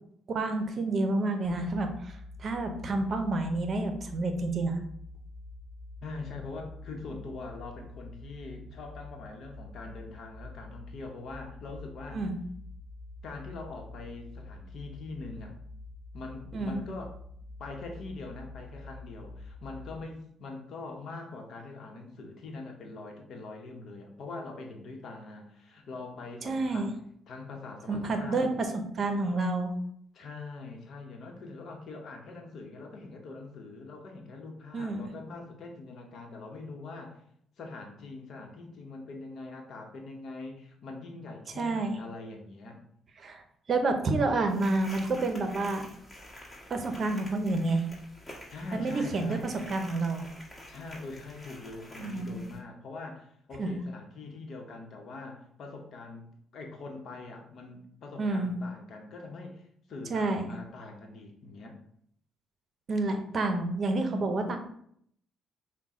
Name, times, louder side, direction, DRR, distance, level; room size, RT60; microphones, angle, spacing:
voice 1, 0.3-4.8 12.1-12.4 16.5-16.8 26.4-26.9 27.9-29.7 34.7-35.1 41.6-42.0 43.2-43.4 43.7-45.9 46.7-47.8 48.7-50.3 52.0-52.4 53.6-53.7 58.2-58.5 60.1-60.5 62.9-64.6, right 2 dB, 50° right, 6 dB, 0.7 m, -29 dB
sound 1, 1.4-20.0, left 2 dB, ahead, 0.7 m, -47 dB
voice 2, 6.0-12.2 13.2-15.5 16.1-17.2 17.6-26.9 27.3-28.5 30.1-37.2 37.6-42.8 48.5-49.5 50.7-61.8, left 3 dB, 65° left, 2 dB, 0.9 m, -43 dB
sound 2, 44.5-52.6, left 1 dB, 20° left, 1.5 m, -48 dB
5.7 x 2.2 x 3.6 m, 0.68 s
cardioid pair, 85°, 0 cm